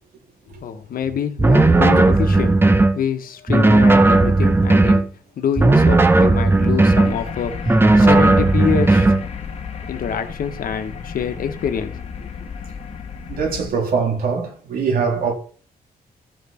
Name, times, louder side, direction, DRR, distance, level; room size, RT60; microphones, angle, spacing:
voice 1, 0.6-2.6 2.9-5.0 5.4-7.5 8.0-9.1 9.9-11.9 12.2-12.3, left 7 dB, 65° left, 1.4 m, -25 dB
sound 1, 1.4-3.0 3.5-5.1 5.6-7.1 7.7-9.2, right 2 dB, 15° right, 0.9 m, -14 dB
sound 2, 7.0-13.7, left 6 dB, 40° left, 1.5 m, -33 dB
voice 2, 13.3-15.3, right 5 dB, 70° right, 3.4 m, -22 dB
14.0 x 6.1 x 4.4 m
wide cardioid pair, 150°, 16 cm